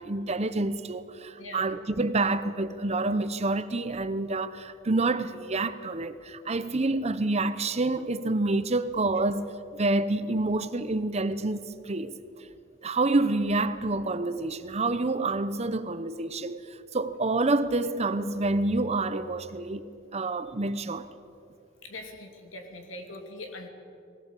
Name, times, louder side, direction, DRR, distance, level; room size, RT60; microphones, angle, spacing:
voice 1, 0.0-9.5 9.7-12.2 12.8-16.7 16.9-21.1, right 2 dB, 35° right, 0.8 m, -28 dB
voice 2, 21.8-23.7, left 2 dB, 85° left, 2.8 m, -42 dB
22.0 x 17.0 x 8.4 m
head